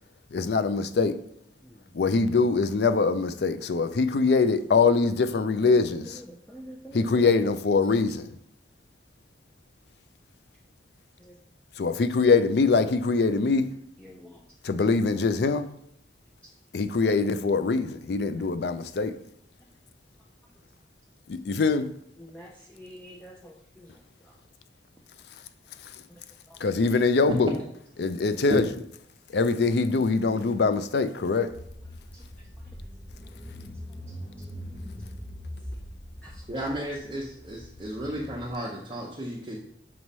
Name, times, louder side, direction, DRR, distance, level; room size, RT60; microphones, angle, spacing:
voice 1, 0.3-1.2 1.9-6.2 6.9-8.3 11.8-13.7 14.6-15.7 16.7-19.2 21.3-21.9 26.6-27.5 28.0-28.7 29.3-31.5, left 4 dB, 70° left, 0.4 m, -23 dB
voice 2, 5.7-7.3 11.2-11.4 14.0-14.4 16.4-16.5 22.2-23.9 24.2-24.3 26.1-26.2 32.1-32.2 34.4-34.5 36.2-36.7, equal, 5° left, 0.5 m, -47 dB
Car / Engine, 31.5-38.5, equal, 40° left, 2.1 m, -42 dB
voice 3, 36.5-39.6, right 1 dB, 25° right, 0.8 m, -34 dB
6.1 x 3.1 x 5.4 m
head